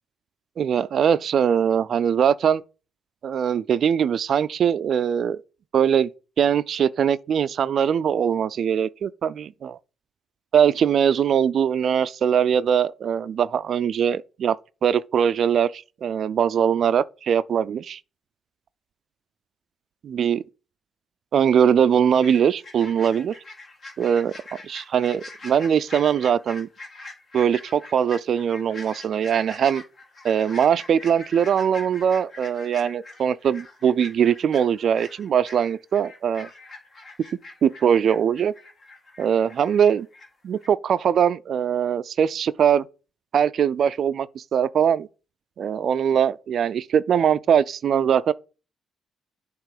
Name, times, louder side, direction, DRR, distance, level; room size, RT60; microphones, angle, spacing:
voice 1, 0.6-2.6 3.2-5.4 5.7-6.1 6.4-9.8 10.5-18.0 20.0-20.4 21.3-23.3 24.0-24.3 24.6-26.7 27.3-29.8 30.2-36.5 37.6-38.5 39.2-40.1 40.4-42.9 43.3-45.1 45.6-48.3, right 8 dB, 60° right, 0.3 m, -21 dB
sound 1, 22.2-40.3 40.6-40.7, left 2 dB, 45° left, 1.7 m, -43 dB
7.4 x 3.0 x 4.8 m
cardioid pair, 90°, 0 cm